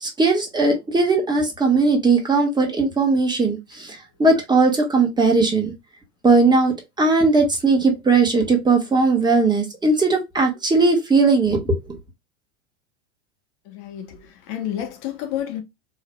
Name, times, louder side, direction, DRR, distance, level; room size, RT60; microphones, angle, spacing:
voice 1, 0.0-5.7 6.2-11.8, right 3 dB, 10° right, 1.4 m, -18 dB
voice 2, 13.7-15.6, left 11 dB, 55° left, 1.2 m, -30 dB
4.6 x 3.2 x 2.2 m
supercardioid pair, 120°, 35 cm